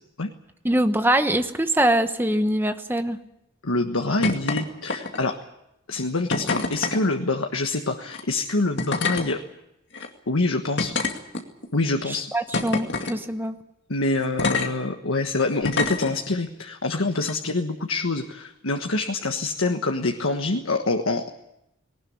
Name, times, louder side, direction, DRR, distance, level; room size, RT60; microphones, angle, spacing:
voice 1, 0.6-3.2 12.1-13.6, right 1 dB, 10° right, 9 dB, 1.0 m, -23 dB
voice 2, 3.6-5.4 5.9-9.4 10.3-10.9 11.7-12.3 13.9-21.3, left 2 dB, 90° left, 4 dB, 1.4 m, -25 dB
sound 1, 4.2-4.6 4.9-5.3 6.3-7.0 8.0-8.2 8.8-9.3 9.9-10.1 10.8-11.7 12.5-13.2 14.4-14.7 15.6-16.1 17.2-17.3, left 3 dB, 55° left, 2.3 m, -26 dB
19.5 x 19.0 x 9.5 m, 0.85 s
head